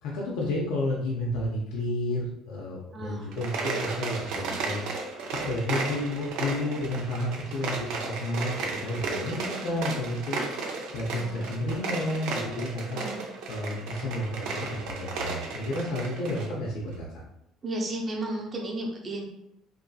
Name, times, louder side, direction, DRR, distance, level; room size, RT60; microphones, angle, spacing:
voice 1, 0.0-4.8 5.3-10.4 10.9-13.0 13.5-17.2, left 1 dB, 80° left, -4 dB, 0.6 m, -31 dB
voice 2, 2.9-3.3 9.3-9.8 11.2-11.5 12.9-13.3 17.6-19.2, right 1 dB, 30° right, 0 dB, 0.7 m, -34 dB
sound 1, 3.3-16.5, right 3 dB, 80° right, 0.5 m, -34 dB
2.7 x 2.6 x 2.3 m, 0.82 s
cardioid pair, 110°, 0 cm